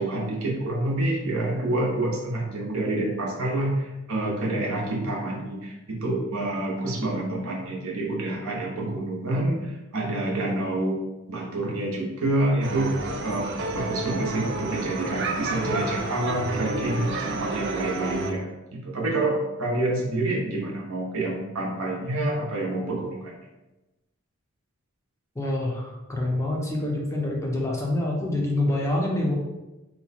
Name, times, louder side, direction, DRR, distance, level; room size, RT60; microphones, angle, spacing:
voice 1, 0.0-11.0 11.3-12.9 13.2-23.3, right 2 dB, 75° right, -2 dB, 0.8 m, -27 dB
sound 1, 12.6-18.3, right 2 dB, 55° right, 0.4 m, -30 dB
voice 2, 25.4-29.4, left 1 dB, 15° left, -2 dB, 0.5 m, -26 dB
2.9 x 2.2 x 4.0 m, 1.0 s
head